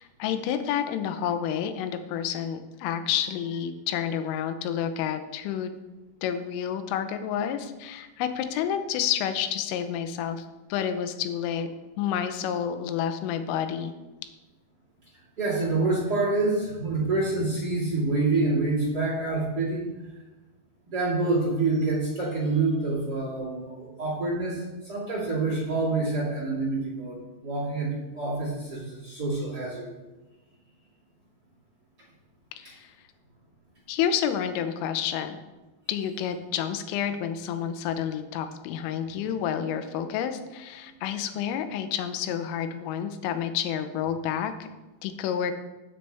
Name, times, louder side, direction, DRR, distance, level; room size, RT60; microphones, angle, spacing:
voice 1, 0.0-5.7 6.2-11.7 12.0-13.9 32.6-32.9 33.9-35.4 35.9-44.5 45.0-45.5, left 9 dB, 80° left, 9 dB, 3.2 m, -29 dB
voice 2, 15.4-19.9 20.9-29.9, right 3 dB, 35° right, -6 dB, 1.6 m, -27 dB
16.0 x 6.6 x 3.4 m, 1.1 s
omnidirectional pair, 5.9 m